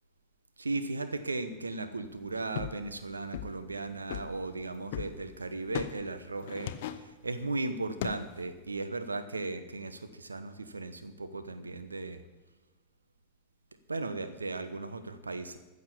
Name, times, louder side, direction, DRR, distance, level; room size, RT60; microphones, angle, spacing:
voice 1, 0.6-6.7 7.2-12.2 13.9-15.6, right 3 dB, 80° right, 10 dB, 1.0 m, -36 dB
sound 1, 2.6-2.9 3.3-3.7 4.1-5.2 5.7-6.0 6.4-7.1 8.0-8.4 8.8-8.9, left 10 dB, 55° left, 0.8 m, -37 dB
14.5 x 6.6 x 8.7 m, 1.2 s
figure-of-eight pair, 90°, 0 cm